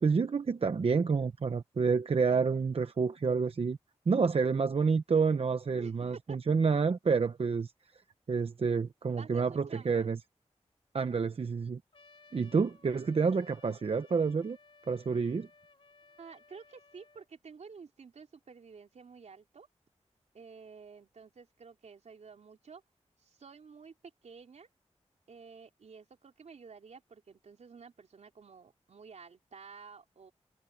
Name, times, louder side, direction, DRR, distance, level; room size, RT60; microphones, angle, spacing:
voice 1, 0.0-3.8 4.1-7.7 8.3-10.2 10.9-11.8 12.3-14.6 14.9-15.5, right 5 dB, 60° right, 0.9 m, -28 dB
voice 2, 5.8-6.4 9.1-10.1 16.2-19.7 20.3-22.8 23.2-23.9 24.2-24.7 25.3-30.3, right 5 dB, 85° right, 4.1 m, -51 dB
Trumpet, 11.9-17.3, left 4 dB, 50° left, 3.5 m, -60 dB
wide cardioid pair, 100°, 11 cm